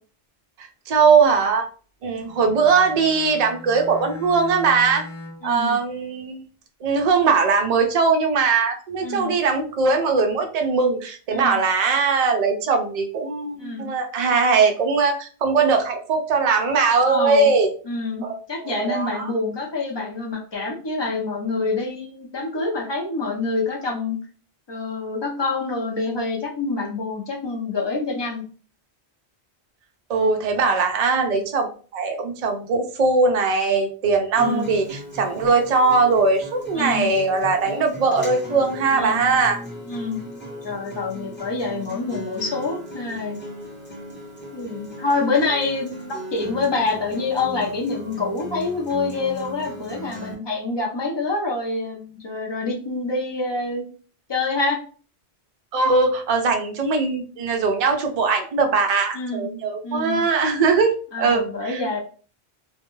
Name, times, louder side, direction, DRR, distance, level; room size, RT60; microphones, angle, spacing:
voice 1, 0.9-1.7 2.0-5.0 5.4-6.4 6.8-17.7 18.2-18.4 18.7-19.3 30.1-39.6 55.7-62.0, right 4 dB, 50° right, 3 dB, 0.5 m, -20 dB
Bowed string instrument, 2.2-5.6, left 2 dB, 65° left, 0.7 m, -40 dB
voice 2, 5.4-5.8 9.0-9.3 11.3-11.6 13.6-13.9 17.1-17.5 17.8-24.2 24.7-28.4 34.4-34.7 36.7-37.1 39.0-39.2 39.9-40.2 40.6-43.4 44.5-53.9 54.3-54.8 59.1-59.5 59.8-60.2 61.1-62.0, left 3 dB, 35° left, -1 dB, 0.4 m, -26 dB
Acoustic guitar, 34.3-50.3, equal, 10° left, 0.8 m, -37 dB
2.2 x 2.2 x 3.0 m, 0.39 s
omnidirectional pair, 1.1 m